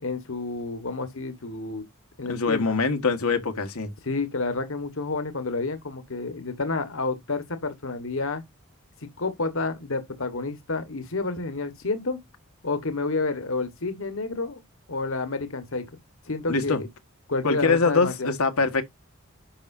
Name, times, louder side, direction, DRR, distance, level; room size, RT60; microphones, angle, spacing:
voice 1, 0.0-1.8 2.2-2.7 4.0-8.4 9.0-12.2 12.6-14.6 14.9-15.8 16.3-16.9 17.3-18.3, left 3 dB, 65° left, 1.4 m, -29 dB
voice 2, 2.3-3.9 16.5-16.8 17.4-18.8, left 4 dB, 85° left, 1.6 m, -23 dB
10.5 x 6.2 x 2.6 m
head